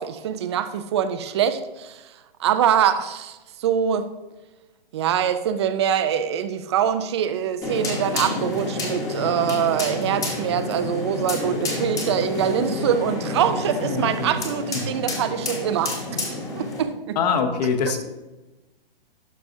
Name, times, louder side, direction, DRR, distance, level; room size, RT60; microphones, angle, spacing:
voice 1, 0.0-4.1 4.9-16.2 16.5-17.2, right 9 dB, 30° right, 11 dB, 0.4 m, -24 dB
sound 1, 7.6-16.8, left 2 dB, 10° left, 1.0 m, -29 dB
voice 2, 13.8-14.3 14.7-14.9 17.1-18.1, left 6 dB, 45° left, 5 dB, 1.0 m, -24 dB
12.0 x 4.8 x 2.6 m, 1.1 s
hypercardioid pair, 150°, 29 cm